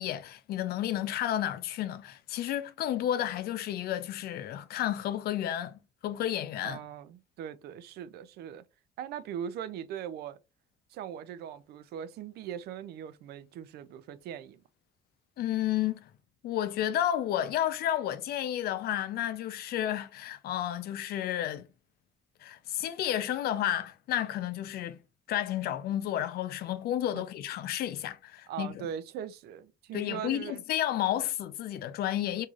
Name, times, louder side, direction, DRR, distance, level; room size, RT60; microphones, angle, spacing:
voice 1, 0.0-6.8 15.4-16.1 16.4-21.7 22.4-25.0 25.3-28.9 29.9-32.5, left 11 dB, 65° left, 0.5 m, -31 dB
voice 2, 6.6-8.6 9.0-10.4 10.9-14.6 27.1-27.2 28.5-30.6, right 9 dB, 70° right, 0.5 m, -40 dB
4.6 x 2.7 x 2.4 m
cardioid pair, 110°, 17 cm